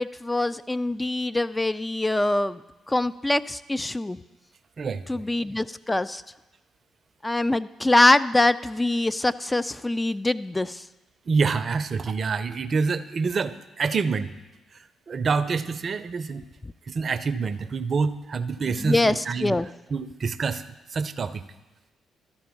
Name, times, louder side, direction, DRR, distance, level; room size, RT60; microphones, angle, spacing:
voice 1, 0.0-2.6 2.9-4.2 5.1-6.2 7.2-10.8 18.8-19.7, left 2 dB, 15° left, 13 dB, 0.3 m, -24 dB
voice 2, 4.8-5.2 11.3-14.3 14.7-16.5 16.9-19.6 19.9-21.4, right 4 dB, 50° right, 13 dB, 0.5 m, -27 dB
12.5 x 4.4 x 7.0 m, 1.1 s
hypercardioid pair, 50°, 0 cm